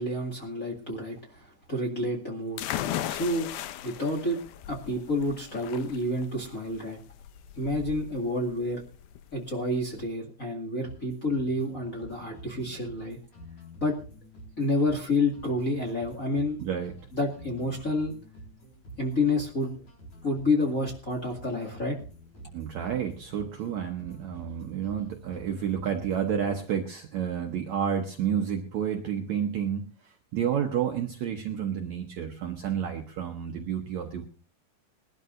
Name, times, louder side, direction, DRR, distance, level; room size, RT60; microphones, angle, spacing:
voice 1, 0.0-2.7 3.1-3.5 3.8-4.4 4.7-7.0 7.6-8.8 9.3-13.2 13.8-14.0 14.6-16.6 17.1-18.1 19.0-19.7 20.2-22.0, left 2 dB, 30° left, -1 dB, 1.9 m, -29 dB
sound 1, 2.6-10.1, left 12 dB, 80° left, 2.6 m, -37 dB
sound 2, 10.8-26.8, right 1 dB, 50° left, 5.2 m, -49 dB
voice 2, 16.6-16.9 22.5-34.3, right 8 dB, 65° right, 3 dB, 1.9 m, -30 dB
21.5 x 12.0 x 2.6 m, 0.38 s
omnidirectional pair, 4.3 m